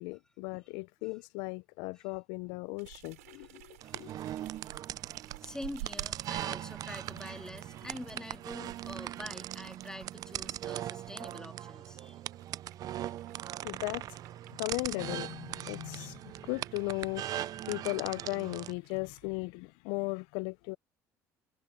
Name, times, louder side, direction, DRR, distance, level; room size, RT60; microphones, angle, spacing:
voice 1, 0.0-4.1 13.6-14.0 14.5-20.8, left 28 dB, 75° left, 0.4 m, -37 dB
sound 1, 2.8-11.4 12.0-19.3, right 19 dB, 90° right, 2.8 m, -53 dB
sound 2, 3.8-18.7, right 12 dB, 55° right, 0.5 m, -40 dB
voice 2, 5.4-12.2, left 1 dB, 10° left, 2.0 m, -46 dB
hypercardioid pair, 75°, 8 cm